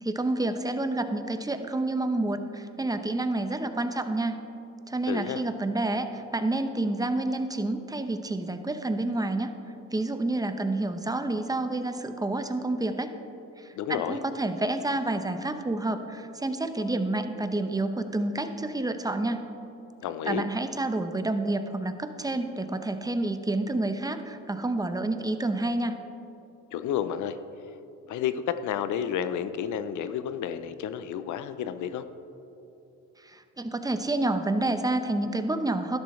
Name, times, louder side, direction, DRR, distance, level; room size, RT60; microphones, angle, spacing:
voice 1, 0.0-4.4 4.9-9.5 9.9-13.1 13.6-19.4 20.2-25.9 33.2-36.0, right 2 dB, 10° right, 8 dB, 0.7 m, -29 dB
voice 2, 5.1-5.4 13.8-14.2 20.0-20.5 26.7-27.4 28.1-32.0, left 9 dB, 80° left, 12 dB, 0.6 m, -31 dB
12.0 x 11.0 x 3.2 m, 2.9 s
cardioid pair, 90°, 30 cm